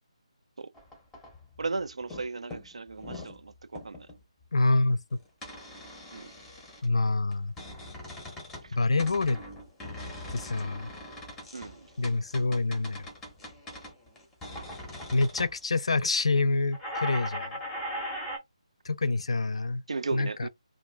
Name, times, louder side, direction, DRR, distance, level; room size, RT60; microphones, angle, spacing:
sound 1, 0.7-1.7 2.0-2.3 2.5-3.4 3.7-4.2 5.4-6.9 7.3-8.7 9.0-15.5 16.7-18.4, equal, 5° left, 0.7 m, -40 dB
voice 1, 1.6-4.1 6.1-6.3 8.6-8.8 11.5-11.9 19.9-20.5, right 3 dB, 65° right, 0.3 m, -35 dB
voice 2, 4.5-5.0 6.8-7.5 8.7-9.4 10.3-10.9 12.0-13.1 15.1-17.6 18.9-19.8 20.1-20.5, left 3 dB, 60° left, 0.4 m, -26 dB
2.4 x 2.1 x 3.1 m
figure-of-eight pair, 150°, 3 cm